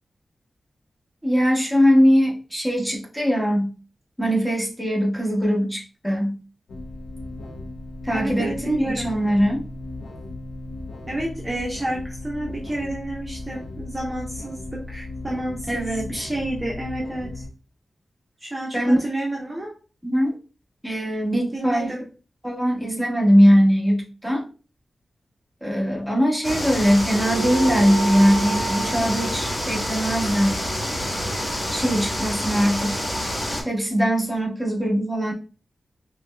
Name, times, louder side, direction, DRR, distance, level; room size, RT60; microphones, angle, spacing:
voice 1, 1.2-3.7 4.2-6.4 8.0-9.6 15.7-16.3 18.7-19.0 20.0-20.3 20.8-21.9 22.4-24.4 25.6-30.5 31.7-33.0 33.6-35.3, equal, 5° left, -3 dB, 1.3 m, -21 dB
sound 1, 6.7-17.5, left 2 dB, 90° left, 0.5 m, -36 dB
voice 2, 8.1-9.2 11.1-17.4 18.4-19.7 21.5-22.0, right 1 dB, 25° right, -2 dB, 0.8 m, -30 dB
sound 2, 26.4-33.6, equal, 35° left, 1.9 m, -27 dB
sound 3, 27.1-31.9, right 4 dB, 55° right, 0.3 m, -33 dB
5.1 x 2.3 x 2.2 m, 0.35 s
wide cardioid pair, 70°, 0 cm